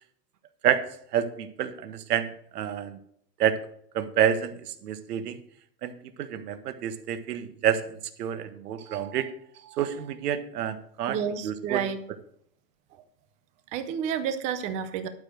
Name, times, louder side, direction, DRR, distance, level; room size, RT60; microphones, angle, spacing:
voice 1, 1.1-3.0 3.4-3.6 3.9-5.4 5.8-9.3 9.6-11.2 11.4-11.8, right 9 dB, 65° right, 10 dB, 1.5 m, -28 dB
voice 2, 11.1-12.0 13.7-15.1, right 8 dB, 15° right, 11 dB, 0.4 m, -30 dB
12.0 x 5.0 x 6.3 m, 0.67 s
hypercardioid pair, 135°, 50 cm